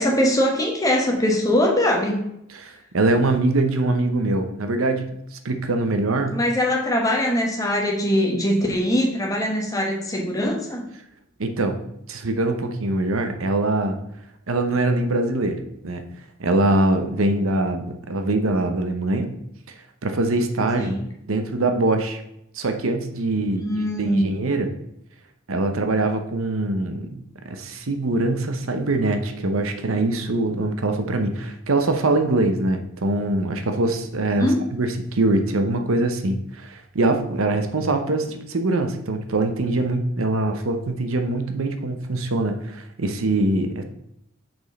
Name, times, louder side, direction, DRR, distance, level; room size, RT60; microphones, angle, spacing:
voice 1, 0.0-2.2 6.3-10.8 20.8-21.0 23.5-24.3 34.4-34.6, left 1 dB, 15° left, -1 dB, 1.3 m, -22 dB
voice 2, 2.5-6.4 11.4-11.8 12.1-14.0 14.5-16.0 16.4-19.3 20.0-20.9 21.3-22.2 22.5-24.7 25.5-43.8, right 2 dB, 80° right, 7 dB, 0.8 m, -23 dB
6.2 x 5.1 x 4.0 m, 0.79 s
head